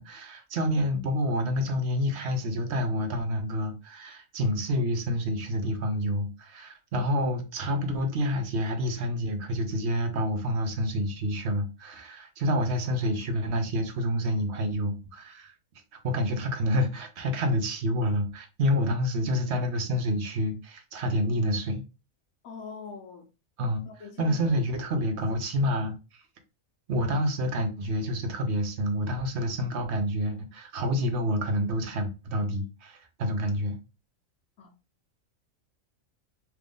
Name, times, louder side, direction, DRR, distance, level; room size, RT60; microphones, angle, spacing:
voice 1, 0.0-15.5 15.9-21.8 23.6-23.8 24.2-25.9 26.9-33.8, equal, 60° right, 0.9 m, -28 dB
voice 2, 22.4-23.3 23.9-24.6 34.6-34.7, left 5 dB, 90° left, 1.2 m, -42 dB
3.0 x 2.5 x 3.5 m
omnidirectional pair, 1.4 m